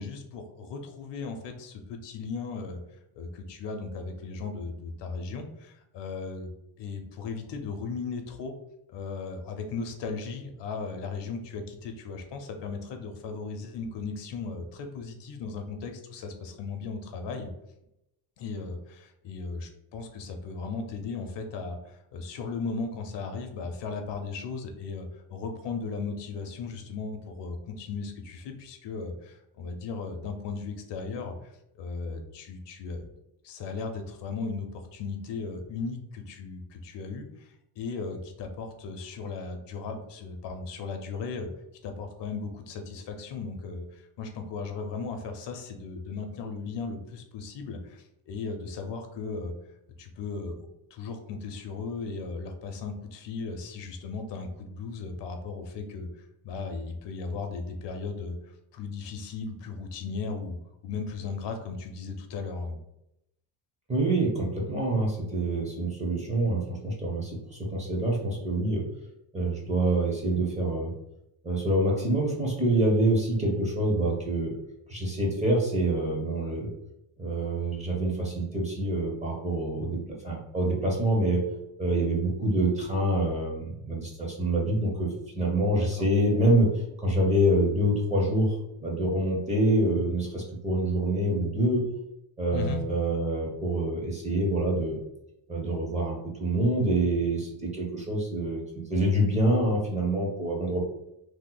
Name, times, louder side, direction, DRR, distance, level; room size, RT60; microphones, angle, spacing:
voice 1, 0.0-6.5 6.8-8.5 8.9-17.5 18.4-33.1 33.4-41.5 41.8-49.5 50.0-60.6 60.8-62.8 85.7-86.1 92.5-92.8, left 4 dB, 60° left, 5 dB, 0.6 m, -36 dB
voice 2, 63.9-68.9 69.3-70.9 71.4-74.5 74.9-76.7 77.2-80.0 80.2-81.4 81.8-86.7 87.0-91.9 92.4-95.0 95.5-98.6 98.9-100.9, right 1 dB, 15° right, -2 dB, 0.6 m, -26 dB
2.8 x 2.0 x 3.7 m, 0.83 s
cardioid pair, 150°, 49 cm